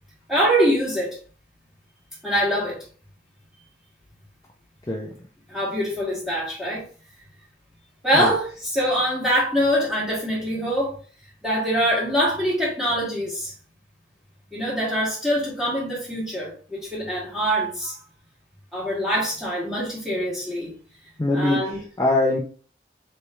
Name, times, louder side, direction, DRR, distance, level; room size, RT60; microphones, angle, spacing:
voice 1, 0.3-1.2 2.2-2.8 5.5-6.8 8.0-11.0 11.4-13.5 14.5-17.9 18.7-20.7 21.3-21.8, equal, ahead, -6 dB, 1.9 m, -24 dB
voice 2, 21.2-22.4, left 2 dB, 20° left, -2 dB, 0.5 m, -22 dB
4.3 x 3.5 x 3.1 m, 0.40 s
head